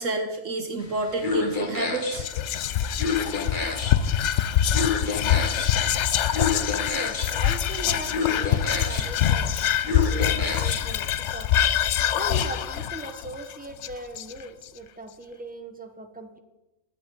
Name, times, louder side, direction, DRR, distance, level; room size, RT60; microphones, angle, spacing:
voice 1, 0.0-2.3, right 2 dB, 65° right, 5 dB, 1.3 m, -29 dB
sound 1, 0.8-11.0, left 5 dB, 35° left, 1.3 m, -31 dB
Whispering, 2.1-14.6, left 10 dB, 65° left, 0.8 m, -25 dB
voice 2, 6.8-11.5 11.8-16.4, right 2 dB, 5° right, 5 dB, 0.8 m, -39 dB
21.5 x 7.9 x 3.8 m, 1.0 s
omnidirectional pair, 1.5 m